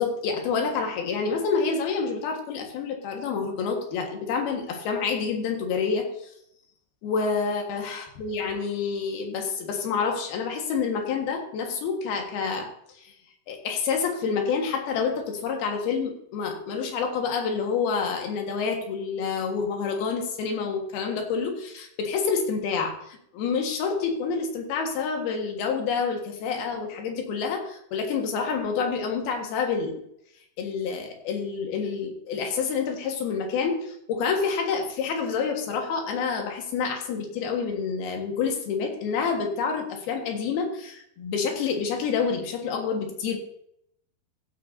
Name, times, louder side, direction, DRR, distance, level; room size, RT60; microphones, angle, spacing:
voice 1, 0.0-6.3 7.0-12.7 13.0-13.1 13.5-30.0 30.6-43.4, left 5 dB, 65° left, 3 dB, 3.2 m, -28 dB
15.5 x 10.5 x 2.7 m, 0.73 s
omnidirectional pair, 5.1 m